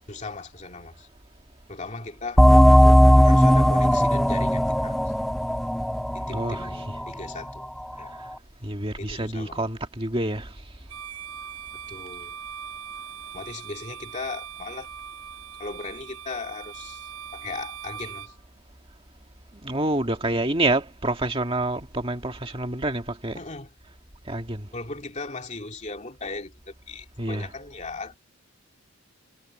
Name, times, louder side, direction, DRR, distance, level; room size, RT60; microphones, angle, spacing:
voice 1, 0.1-1.1 1.7-2.4 3.2-5.1 6.1-7.7 8.0-8.2 9.0-9.7 11.9-12.5 13.3-14.9 15.6-18.4 23.4-23.7 24.7-28.2, left 3 dB, 30° left, 2.4 m, -37 dB
sound 1, 2.4-7.6, equal, ahead, 0.3 m, -17 dB
voice 2, 6.3-6.9 8.2-8.3 8.6-10.5 19.6-23.4 24.3-24.7 27.2-27.5, right 2 dB, 25° right, 1.9 m, -27 dB
Bowed string instrument, 10.9-18.4, right 8 dB, 75° right, 5.9 m, -40 dB
head